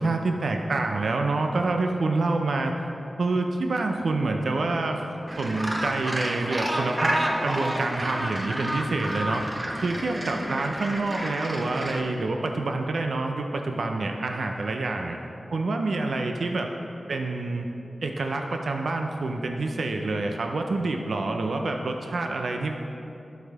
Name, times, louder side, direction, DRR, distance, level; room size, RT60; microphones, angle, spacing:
voice 1, 0.0-2.7 3.2-5.1 5.4-9.4 9.8-15.2 15.5-16.7 17.1-17.7 18.0-22.7, right 3 dB, 80° right, 3 dB, 0.5 m, -27 dB
Gull seagull, 5.3-12.0, right 1 dB, 25° right, 1.2 m, -30 dB
12.0 x 4.1 x 5.4 m, 2.9 s
cardioid pair, 50°, 0 cm